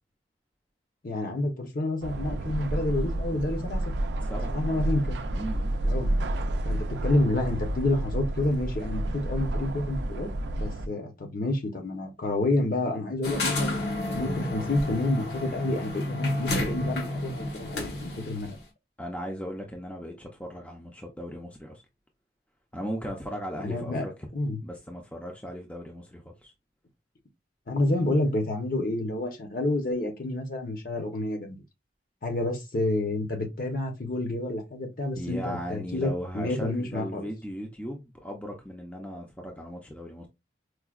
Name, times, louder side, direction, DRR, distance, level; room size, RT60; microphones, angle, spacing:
voice 1, 1.0-3.8 4.5-5.2 5.8-6.1 6.6-13.8 14.1-18.6 23.6-24.1 24.3-24.6 27.7-31.6 32.2-37.3, left 2 dB, 50° left, 0.8 m, -29 dB
sound 1, 2.0-10.9, right 1 dB, 70° right, 0.4 m, -30 dB
voice 2, 4.2-4.6 5.3-5.7 19.0-21.8 22.7-24.3 24.6-26.5 35.1-40.3, equal, 10° left, 0.5 m, -37 dB
sound 2, 13.2-18.5, left 2 dB, 65° left, 1.2 m, -30 dB
4.7 x 2.2 x 2.4 m
head